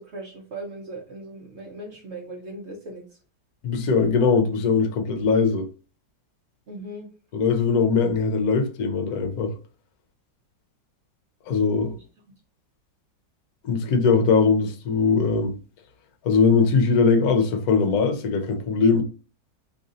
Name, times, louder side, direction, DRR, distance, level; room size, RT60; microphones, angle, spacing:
voice 1, 0.0-3.0 6.7-7.1, right 1 dB, 55° right, 0.7 m, -38 dB
voice 2, 3.6-5.7 7.3-9.5 11.5-11.9 13.6-15.5 16.2-19.0, left 5 dB, 65° left, 1.1 m, -21 dB
3.2 x 2.6 x 3.8 m
omnidirectional pair, 1.9 m